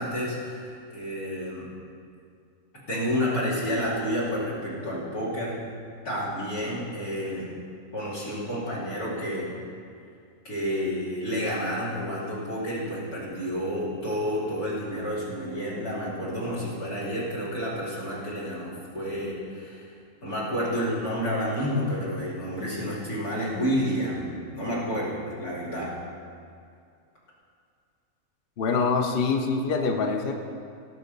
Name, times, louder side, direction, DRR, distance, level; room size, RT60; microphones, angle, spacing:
voice 1, 0.0-1.7 2.9-5.6 6.1-7.6 7.9-9.5 10.5-19.8 20.2-25.9, equal, 85° left, -6 dB, 3.5 m, -30 dB
voice 2, 28.6-30.3, left 4 dB, 45° left, 3 dB, 0.9 m, -25 dB
16.5 x 6.2 x 5.3 m, 2.3 s
omnidirectional pair, 1.6 m